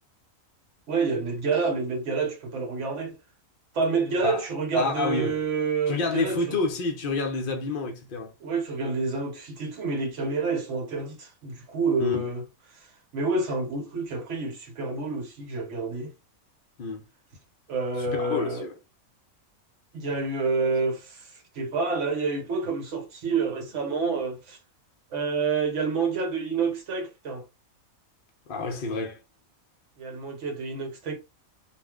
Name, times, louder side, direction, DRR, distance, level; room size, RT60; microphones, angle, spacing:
voice 1, 0.9-3.2 3.7-6.6 8.4-12.4 12.7-16.1 17.7-18.7 19.9-24.6 25.1-27.4 30.0-31.2, right 4 dB, 60° right, 1.1 m, -28 dB
voice 2, 4.7-5.4 5.9-8.3 12.0-12.2 16.8-17.0 18.1-18.7 28.5-29.2, left 3 dB, 60° left, 0.5 m, -29 dB
2.5 x 2.0 x 3.5 m
omnidirectional pair, 1.5 m